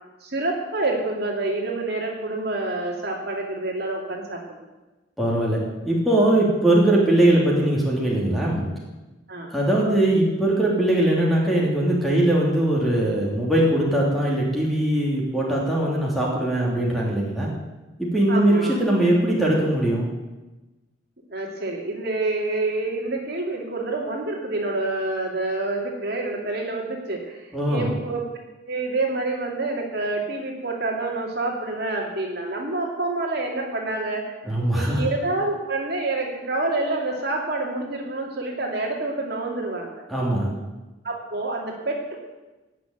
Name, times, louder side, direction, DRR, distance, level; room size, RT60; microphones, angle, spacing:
voice 1, 0.2-4.4 9.3-9.5 18.3-18.8 21.3-28.2 28.6-34.4 34.7-40.0 41.0-42.2, right 2 dB, 55° right, 0 dB, 2.5 m, -27 dB
voice 2, 5.2-5.6 5.8-8.6 9.5-17.5 18.0-20.1 27.5-27.9 34.4-35.0 40.1-40.5, right 1 dB, ahead, -4 dB, 3.1 m, -21 dB
17.5 x 6.0 x 9.3 m, 1.1 s
head